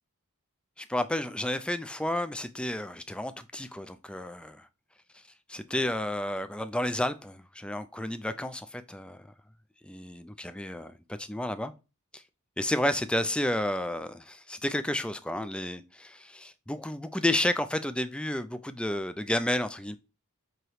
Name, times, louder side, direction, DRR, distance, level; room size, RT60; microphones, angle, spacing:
voice 1, 0.8-4.7 5.5-9.3 9.8-11.7 12.1-12.2 12.6-20.0, left 1 dB, 5° left, 0.4 m, -31 dB
7.8 x 3.1 x 4.7 m
head